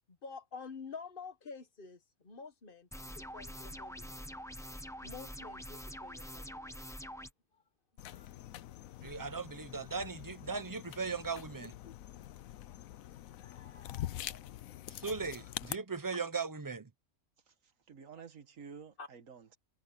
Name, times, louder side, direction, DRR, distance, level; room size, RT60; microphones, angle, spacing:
voice 1, 0.1-4.3 5.0-6.8 7.5-7.6 8.0-8.4 11.8-12.0 12.6-12.8 13.2-14.6 16.0-16.1 19.0-19.1, left 5 dB, 40° left, 1.4 m, -50 dB
sound 1, 2.9-7.3, equal, 5° left, 0.9 m, -45 dB
raw notsure, 8.0-15.8, left 13 dB, 90° left, 1.1 m, -45 dB
voice 2, 9.0-11.7 14.9-16.9, right 4 dB, 20° right, 0.7 m, -38 dB
voice 3, 17.5-19.6, right 6 dB, 75° right, 1.8 m, -52 dB
omnidirectional pair, 1.4 m